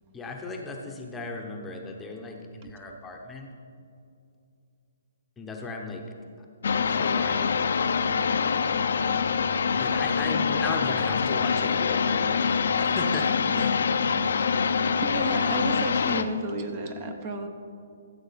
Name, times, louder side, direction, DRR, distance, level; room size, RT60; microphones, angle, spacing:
voice 1, 0.1-3.5 5.4-6.0 6.9-7.7 9.7-13.3 13.5-13.8, left 3 dB, 10° left, 1 dB, 0.9 m, -36 dB
Hand drier, 6.6-16.2, left 6 dB, 70° left, 0.6 m, -25 dB
voice 2, 15.0-17.5, right 2 dB, 30° right, 6 dB, 0.9 m, -32 dB
14.5 x 7.7 x 4.1 m, 2.5 s
hypercardioid pair, 155°, 0 cm